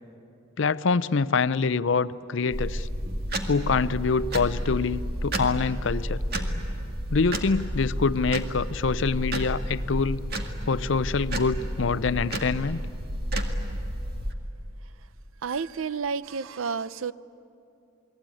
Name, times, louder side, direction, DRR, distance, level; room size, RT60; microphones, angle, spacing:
voice 1, 0.6-2.9 3.5-6.2 7.1-10.2 10.7-12.8, left 4 dB, 65° left, 16 dB, 0.6 m, -25 dB
sound 1, 2.5-14.3, equal, 50° right, 1.9 m, -31 dB
voice 2, 15.4-17.1, right 5 dB, 80° right, 16 dB, 0.6 m, -30 dB
28.5 x 21.0 x 9.1 m, 2.7 s
head